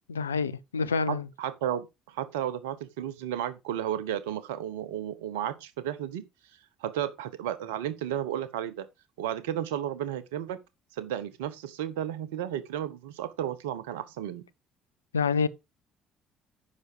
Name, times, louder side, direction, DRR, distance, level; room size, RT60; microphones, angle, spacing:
voice 1, 0.1-1.3 15.1-15.5, left 5 dB, 90° left, 0.4 m, -27 dB
voice 2, 1.1-6.2 6.8-8.9 9.2-10.6 10.9-14.4, right 11 dB, 75° right, 1.0 m, -33 dB
9.6 x 6.1 x 4.8 m
hypercardioid pair, 55°, 0 cm